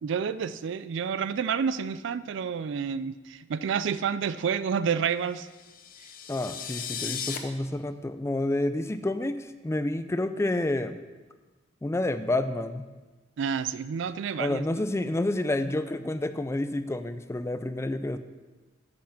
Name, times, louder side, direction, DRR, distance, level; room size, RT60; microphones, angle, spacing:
voice 1, 0.0-5.5 13.4-14.7, right 7 dB, 65° right, 15 dB, 0.4 m, -29 dB
sound 1, 5.5-7.4, left 8 dB, 45° left, 0.8 m, -36 dB
voice 2, 6.3-11.0 11.8-12.9 14.4-18.2, left 1 dB, 15° left, 11 dB, 0.4 m, -29 dB
8.7 x 5.8 x 6.4 m, 1.2 s
head